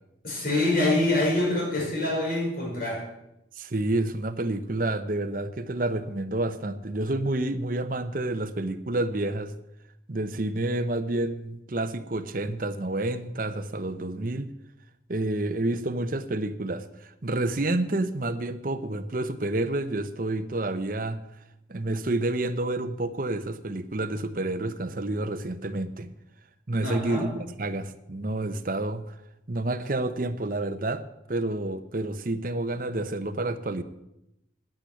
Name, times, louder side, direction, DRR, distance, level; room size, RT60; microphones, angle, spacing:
voice 1, 0.2-3.1 26.8-27.4, left 2 dB, 50° left, -3 dB, 5.2 m, -25 dB
voice 2, 3.6-9.5 10.1-14.5 15.1-21.2 21.7-26.1 26.7-27.3 27.6-29.1 29.5-31.0 31.3-33.8, right 2 dB, 45° right, 10 dB, 0.8 m, -29 dB
10.0 x 9.0 x 9.2 m, 0.86 s
head